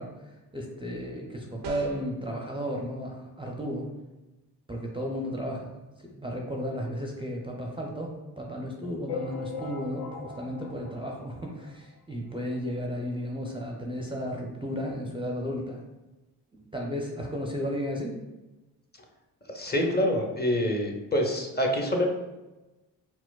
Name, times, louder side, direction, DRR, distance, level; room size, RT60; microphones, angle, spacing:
voice 1, 0.0-3.9 4.7-5.7 6.0-15.8 16.5-18.2, equal, 10° right, -1 dB, 0.5 m, -34 dB
sound 1, 1.6-2.2, right 3 dB, 75° right, 0.5 m, -39 dB
sound 2, 9.1-11.9 12.4-12.5 12.7-12.9 13.1-13.2 14.1-14.2 14.7-14.8, left 5 dB, 65° left, 0.5 m, -39 dB
voice 2, 19.5-22.1, equal, 25° left, 1 dB, 0.7 m, -26 dB
4.3 x 2.1 x 2.3 m, 1.1 s
supercardioid pair, 45°, 42 cm